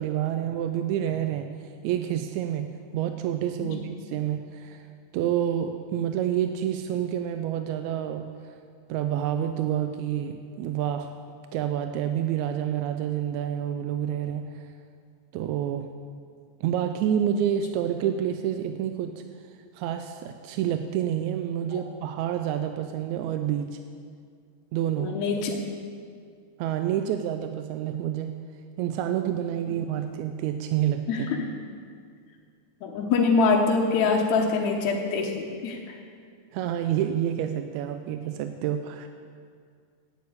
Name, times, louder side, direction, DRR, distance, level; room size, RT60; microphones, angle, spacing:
voice 1, 0.0-2.7 2.9-4.9 5.1-8.3 8.9-11.1 11.5-14.7 15.3-15.9 16.6-19.2 19.7-23.8 24.7-25.2 26.6-28.3 28.8-31.1 36.5-39.1, right 10 dB, 80° right, 7 dB, 1.8 m, -28 dB
voice 2, 25.0-25.6 31.1-31.5 32.8-36.0, left 4 dB, 75° left, -1 dB, 2.2 m, -24 dB
9.6 x 8.3 x 8.5 m, 2.1 s
omnidirectional pair, 3.5 m